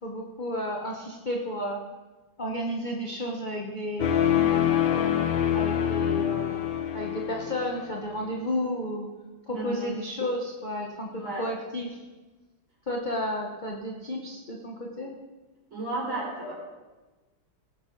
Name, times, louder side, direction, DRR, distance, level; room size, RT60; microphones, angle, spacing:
voice 1, 0.0-1.8 2.4-4.3 5.5-9.1 9.5-12.0 12.9-15.1, equal, 25° left, -1 dB, 1.2 m, -32 dB
sound 1, 4.0-8.0, left 10 dB, 70° left, 1.6 m, -25 dB
voice 2, 9.5-9.9 11.1-11.5 15.7-16.5, right 2 dB, 30° right, -5 dB, 5.6 m, -33 dB
19.0 x 9.9 x 4.0 m, 1.2 s
omnidirectional pair, 2.2 m